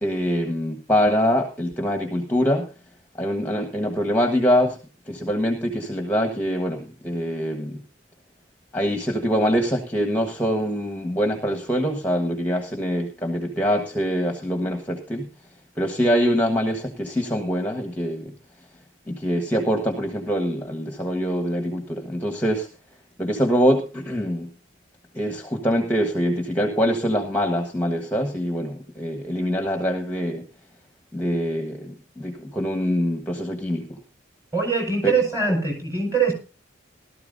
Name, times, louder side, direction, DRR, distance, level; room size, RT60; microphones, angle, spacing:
voice 1, 0.0-2.7 3.2-4.8 5.1-7.8 8.7-15.3 15.8-18.3 19.1-22.7 23.2-24.5 25.1-30.4 31.1-34.0 35.0-35.1 35.5-35.6, equal, 10° left, 3 dB, 1.4 m, -24 dB
voice 2, 34.5-36.3, right 4 dB, 15° right, 2 dB, 4.9 m, -22 dB
18.5 x 13.0 x 2.7 m, 0.32 s
head